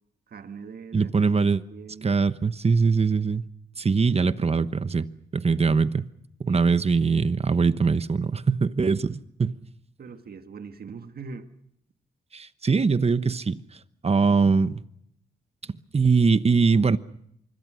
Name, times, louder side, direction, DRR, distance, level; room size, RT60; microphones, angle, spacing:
voice 1, 0.3-1.3 1.7-2.1 6.5-6.7 10.0-11.5, right 5 dB, 60° right, 1.8 m, -41 dB
voice 2, 0.9-1.6 2.0-3.4 3.8-5.1 5.3-6.1 6.4-9.6 12.3-13.6 14.0-14.8 15.9-17.0, right 4 dB, 35° right, 1.1 m, -22 dB
25.0 x 22.5 x 6.4 m
cardioid pair, 80°, 18 cm